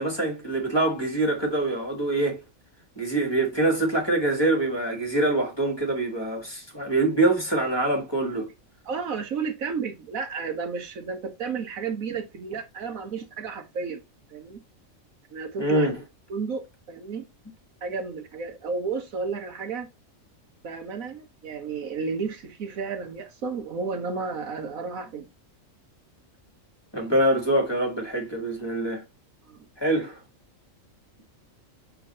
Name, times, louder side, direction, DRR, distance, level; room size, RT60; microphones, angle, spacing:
voice 1, 0.0-2.4 3.0-8.4 15.6-15.9 26.9-29.0 29.8-30.2, right 2 dB, 20° left, 1.6 m, -24 dB
voice 2, 8.8-14.0 14.3-14.6 15.3-15.9 16.3-16.6 16.9-17.2 17.8-19.9 20.6-25.3 29.4-29.6, right 5 dB, 85° right, 1.6 m, -32 dB
7.0 x 3.8 x 4.0 m
omnidirectional pair, 1.4 m